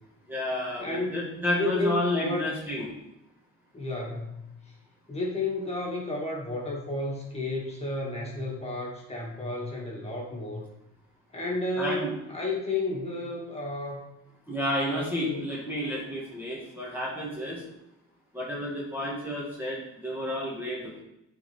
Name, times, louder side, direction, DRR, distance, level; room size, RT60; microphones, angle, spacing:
voice 1, 0.3-2.9 11.8-12.1 14.5-17.6 18.3-21.0, left 1 dB, 5° right, -5 dB, 1.8 m, -31 dB
voice 2, 0.8-1.1 1.6-2.4 3.7-4.7 5.1-10.7 11.3-14.1 14.9-15.5, left 2 dB, 20° left, -3 dB, 2.3 m, -32 dB
8.9 x 4.4 x 3.6 m, 0.84 s
cardioid pair, 90°, 30 cm